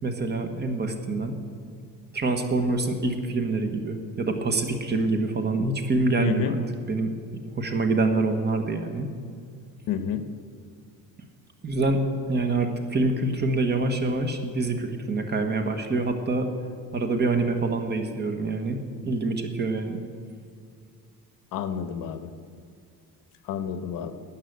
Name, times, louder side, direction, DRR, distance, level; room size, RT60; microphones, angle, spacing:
voice 1, 0.0-1.3 2.1-6.6 6.9-7.1 7.5-9.1 11.6-16.5 16.9-20.0, right 2 dB, 30° right, 5 dB, 1.3 m, -26 dB
voice 2, 6.2-6.5 9.9-10.2 21.5-22.3 23.4-24.1, left 8 dB, 70° left, 10 dB, 1.1 m, -29 dB
13.0 x 9.4 x 8.1 m, 2.3 s
cardioid pair, 165°, 35 cm